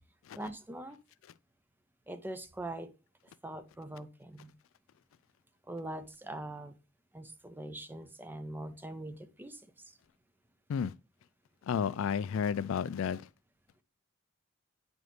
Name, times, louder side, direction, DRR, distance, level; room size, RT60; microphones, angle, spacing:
voice 1, 0.3-1.0 2.1-2.9 3.4-4.5 5.7-6.7 7.1-9.9, right 1 dB, 10° right, 0.5 m, -42 dB
voice 2, 11.7-13.2, left 7 dB, 65° left, 0.3 m, -31 dB
9.4 x 5.2 x 3.3 m
head